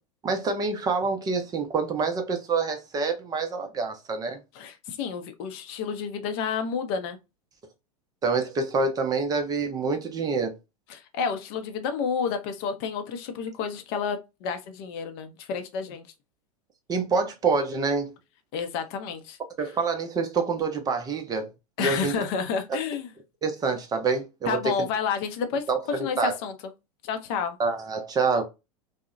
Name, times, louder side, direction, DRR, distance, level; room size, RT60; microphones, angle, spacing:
voice 1, 0.2-4.4 8.2-10.5 16.9-18.1 19.6-21.5 21.8-22.1 23.4-24.9 25.7-26.4 27.6-28.4, right 4 dB, 20° right, 0.5 m, -26 dB
voice 2, 4.5-7.2 10.9-16.0 18.5-19.4 21.8-23.1 24.5-26.5 27.0-27.6, left 6 dB, 45° left, 0.5 m, -30 dB
2.7 x 2.1 x 2.4 m
figure-of-eight pair, 90°, 19 cm